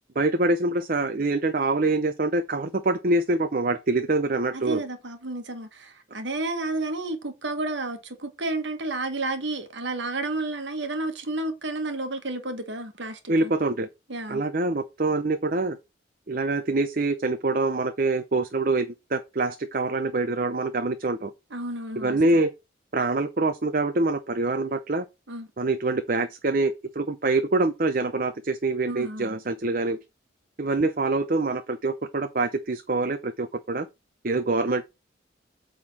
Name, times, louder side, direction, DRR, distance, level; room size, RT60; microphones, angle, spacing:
voice 1, 0.2-4.8 13.3-13.9 14.3-15.8 16.3-21.3 22.0-22.5 22.9-25.0 25.6-30.0 30.6-33.9 34.2-34.8, right 2 dB, 45° right, 0.7 m, -25 dB
voice 2, 4.5-13.5 14.1-14.4 21.5-22.4 25.3-25.5 28.9-29.4, right 2 dB, 65° right, 1.4 m, -31 dB
8.5 x 3.8 x 6.3 m
head